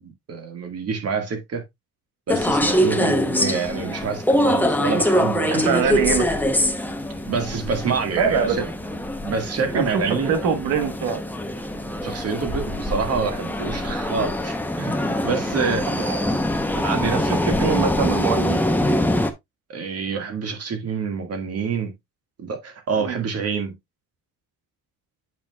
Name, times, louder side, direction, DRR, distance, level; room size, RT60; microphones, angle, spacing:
voice 1, 0.0-1.6 2.3-5.8 7.3-8.7 9.2-10.3 12.0-15.9 16.7-17.8 19.7-21.9 22.4-23.7, right 5 dB, 45° right, 1.8 m, -27 dB
sound 1, 2.3-19.3, left 1 dB, 5° left, 0.8 m, -24 dB
voice 2, 5.4-6.4 8.2-8.5 9.7-11.2 15.7-16.2 17.0-18.6 23.0-23.2, right 7 dB, 80° right, 1.4 m, -24 dB
8.6 x 5.7 x 2.3 m
cardioid pair, 125°, 34 cm